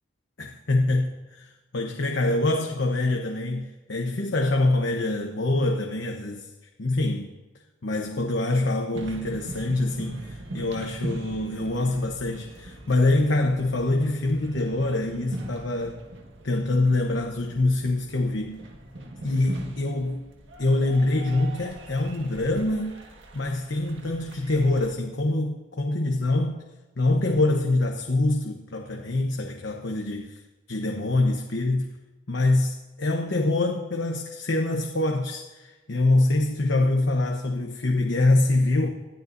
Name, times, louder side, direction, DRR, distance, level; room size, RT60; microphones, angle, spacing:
voice 1, 0.4-1.1 1.7-6.5 6.8-7.3 7.8-16.0 16.4-18.6 19.2-20.3 20.6-23.0 23.3-26.6 27.0-30.4 30.7-31.9 32.3-38.9, left 2 dB, 80° left, 2 dB, 1.1 m, -25 dB
sound 1, 8.9-24.9, right 1 dB, 85° right, 1.7 m, -41 dB
20.5 x 13.5 x 2.7 m, 1.1 s
head